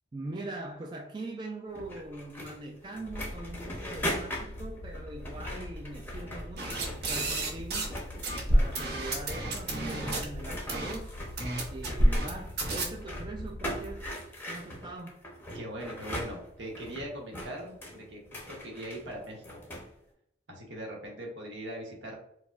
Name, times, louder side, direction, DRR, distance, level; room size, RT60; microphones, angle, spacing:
voice 1, 0.1-7.9 8.5-11.1 11.7-14.1 14.5-15.3, right 2 dB, 25° right, 1 dB, 0.3 m, -42 dB
sound 1, 1.7-7.5 7.8-19.9, equal, 10° left, 0.7 m, -41 dB
sound 2, 3.1-14.1, left 1 dB, 85° left, 0.5 m, -43 dB
sound 3, 6.6-8.0 8.2-10.2 10.7-10.9 11.4-12.3 12.6-12.8, right 1 dB, 55° right, 0.8 m, -28 dB
voice 2, 15.5-19.6 20.5-22.2, right 1 dB, 75° right, 0 dB, 1.0 m, -41 dB
4.7 x 2.1 x 2.4 m, 0.76 s
head